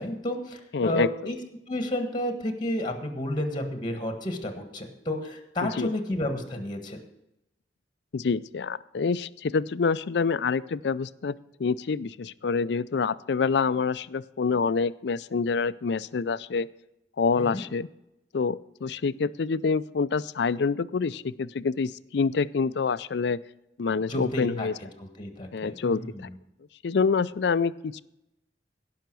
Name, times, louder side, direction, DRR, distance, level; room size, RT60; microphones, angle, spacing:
voice 1, 0.0-1.4 1.7-7.0 17.4-17.6 24.1-24.7 25.0-26.3, left 1 dB, 25° left, 6 dB, 1.6 m, -31 dB
voice 2, 0.7-1.3 5.6-5.9 8.1-16.7 17.2-17.9 18.3-23.4 23.8-24.7 25.5-26.0 26.8-28.0, left 5 dB, 70° left, 17 dB, 0.4 m, -27 dB
17.5 x 5.8 x 6.1 m, 0.88 s
head